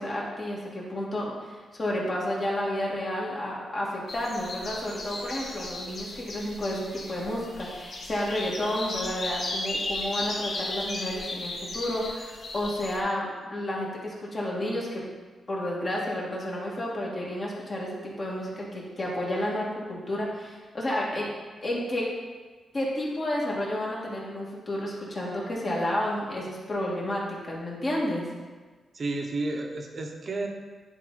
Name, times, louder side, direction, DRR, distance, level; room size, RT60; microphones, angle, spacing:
voice 1, 0.0-15.0 15.5-21.3 21.6-22.0 22.7-28.2, left 1 dB, 40° left, -4 dB, 2.0 m, -31 dB
sound 1, 4.1-13.0, left 2 dB, 55° left, 1.0 m, -35 dB
voice 2, 28.9-30.5, right 2 dB, 45° right, 2 dB, 1.0 m, -31 dB
9.9 x 4.0 x 4.1 m, 1.4 s
cardioid pair, 95°, 0 cm